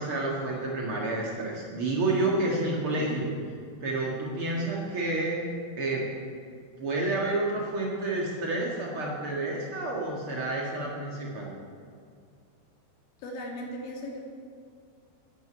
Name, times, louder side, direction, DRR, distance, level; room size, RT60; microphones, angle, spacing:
voice 1, 0.0-3.3 3.8-5.4 5.8-6.0 6.8-11.5, right 2 dB, 85° right, -3 dB, 1.2 m, -29 dB
voice 2, 2.9-3.2 13.2-14.2, left 1 dB, 70° left, 0 dB, 4.4 m, -38 dB
13.0 x 10.5 x 8.9 m, 2.3 s
omnidirectional pair, 5.7 m